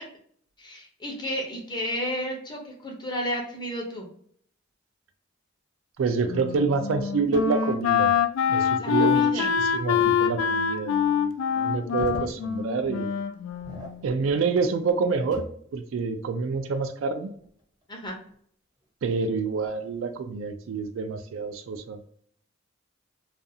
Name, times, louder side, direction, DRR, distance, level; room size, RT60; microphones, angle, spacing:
voice 1, 0.6-4.1 8.8-9.5 17.9-18.2, equal, 20° left, 0 dB, 0.7 m, -32 dB
voice 2, 6.0-8.1 8.5-13.1 14.0-15.5 15.7-17.3 19.0-22.1, right 4 dB, 75° right, 9 dB, 0.4 m, -27 dB
Wind instrument woodwind instrument, 6.3-14.1, left 8 dB, 85° left, 0.3 m, -25 dB
sound 1, 7.3-7.6 10.0-10.2 10.7-10.8 11.7-12.4 12.7-13.0 13.5-14.4 14.7-15.7 17.2-18.3 18.8-18.9 19.6-20.0, equal, 20° right, 0.6 m, -42 dB
2.5 x 2.3 x 2.6 m, 0.62 s
head